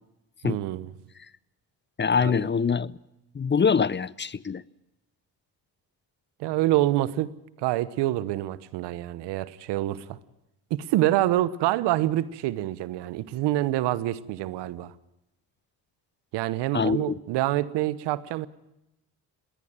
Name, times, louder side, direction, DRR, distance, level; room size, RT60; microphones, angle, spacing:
voice 1, 0.4-0.9 2.2-2.5 6.4-7.3 7.6-10.2 10.7-14.9 16.3-18.5, right 15 dB, 85° right, 1.1 m, -26 dB
voice 2, 2.0-3.0 3.3-4.6 16.7-17.1, left 6 dB, 25° left, 0.7 m, -24 dB
20.5 x 19.0 x 8.9 m
supercardioid pair, 65°, 40 cm